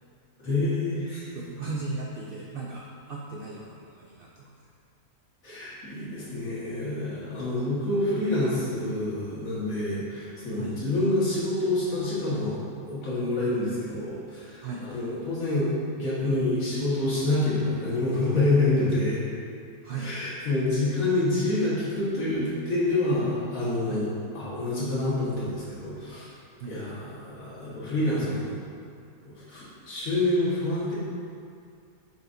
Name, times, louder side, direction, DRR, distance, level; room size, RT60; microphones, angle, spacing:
voice 1, 0.4-1.2 5.4-12.6 12.9-19.2 20.0-26.3 26.7-28.6 29.2-30.9, left 2 dB, 65° left, -8 dB, 2.0 m, -27 dB
voice 2, 1.3-4.5 7.6-7.7 10.6-10.7 14.6-14.9 19.8-20.1 23.9-24.1 26.6-26.8, right 4 dB, 70° right, -2 dB, 0.5 m, -36 dB
7.9 x 4.6 x 2.6 m, 2.3 s
omnidirectional pair, 1.5 m